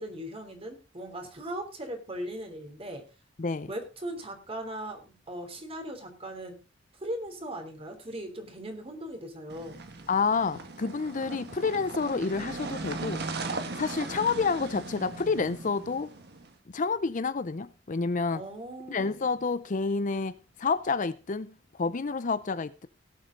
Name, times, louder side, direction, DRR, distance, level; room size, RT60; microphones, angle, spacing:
voice 1, 0.0-3.0 3.7-6.6 7.0-9.8 18.3-19.2, right 1 dB, 30° right, 3.2 m, -39 dB
voice 2, 3.4-3.7 10.1-13.2 13.8-16.1 16.7-18.4 18.9-22.9, left 4 dB, 45° left, 0.6 m, -29 dB
sound 1, 9.5-16.5, right 3 dB, 60° right, 1.7 m, -38 dB
18.0 x 7.8 x 3.8 m
head